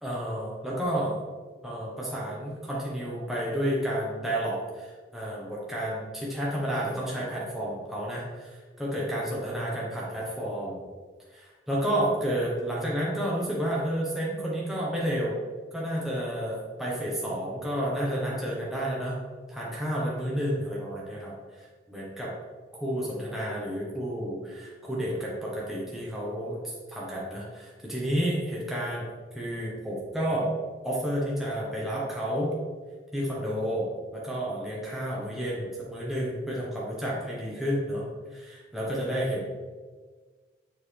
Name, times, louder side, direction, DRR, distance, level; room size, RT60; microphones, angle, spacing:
voice 1, 0.0-1.2 1.6-4.9 5.1-10.8 11.3-15.4 15.7-19.2 19.5-22.3 22.8-29.1 29.3-30.5 30.8-32.5 33.1-38.0 38.3-39.5, equal, ahead, -6 dB, 1.1 m, -31 dB
7.1 x 4.0 x 3.3 m, 1.4 s
head